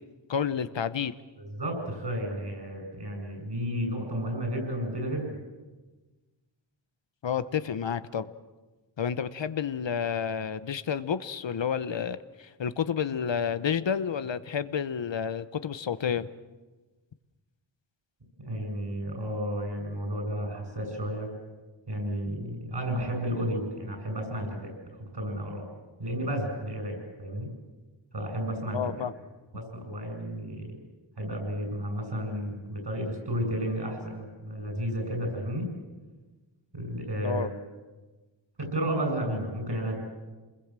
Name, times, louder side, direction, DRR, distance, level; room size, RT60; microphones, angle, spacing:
voice 1, 0.3-1.1 7.2-8.3 9.0-16.3 28.7-29.1 37.2-37.5, left 7 dB, 75° left, 13 dB, 0.9 m, -30 dB
voice 2, 1.6-5.4 18.5-21.3 21.9-24.7 25.0-25.7 26.0-27.5 28.1-28.8 29.5-30.7 31.2-35.7 36.7-37.5 38.6-40.0, equal, 65° right, 4 dB, 7.7 m, -32 dB
27.5 x 21.0 x 7.5 m, 1.2 s
wide cardioid pair, 80°, 45 cm